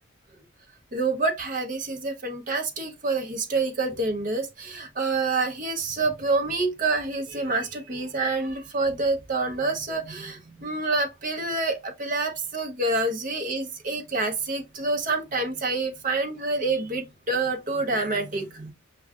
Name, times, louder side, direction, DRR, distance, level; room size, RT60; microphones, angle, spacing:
voice 1, 0.9-18.7, right 3 dB, 40° right, 0.7 m, -27 dB
6.3 x 2.3 x 2.3 m
head